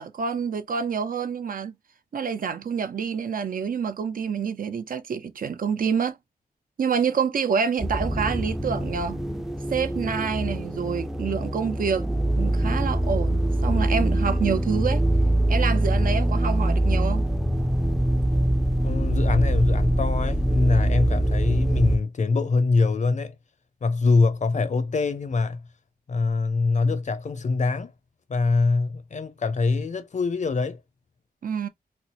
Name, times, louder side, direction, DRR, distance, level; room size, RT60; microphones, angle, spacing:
voice 1, 0.0-1.7 2.1-6.2 6.8-9.2 9.7-12.1 12.4-15.0 15.5-17.2 31.4-31.7, right 6 dB, 60° right, 0.5 m, -27 dB
sound 1, 7.8-22.0, right 1 dB, ahead, 0.4 m, -23 dB
voice 2, 18.8-23.3 23.8-25.6 26.1-27.9 28.3-30.8, left 4 dB, 50° left, 0.5 m, -24 dB
4.2 x 2.0 x 2.7 m
wide cardioid pair, 120°, 16 cm